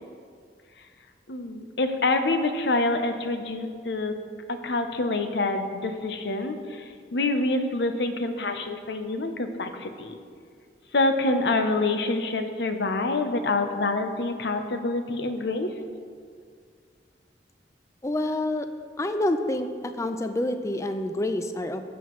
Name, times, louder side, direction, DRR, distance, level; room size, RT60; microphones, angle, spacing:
voice 1, 1.3-4.1 4.5-6.6 7.1-10.1 10.9-15.7, left 2 dB, 70° left, 7 dB, 0.7 m, -26 dB
voice 2, 18.0-18.7 19.0-21.8, left 1 dB, 15° left, 8 dB, 0.4 m, -27 dB
15.0 x 7.2 x 3.1 m, 2.1 s
head